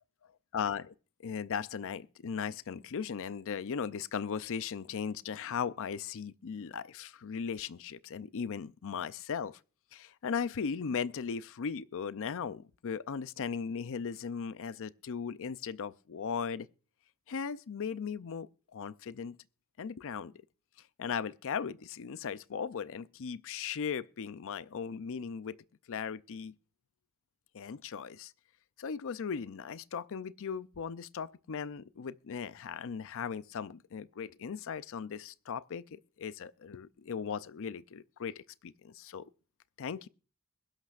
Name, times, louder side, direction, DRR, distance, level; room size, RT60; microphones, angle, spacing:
voice 1, 0.5-0.9 1.2-9.6 9.9-16.7 17.3-19.4 19.8-20.3 21.0-25.6 25.9-26.5 27.5-28.3 28.8-39.3 39.8-40.1, left 6 dB, 60° left, 0.5 m, -37 dB
22.0 x 11.5 x 2.4 m
head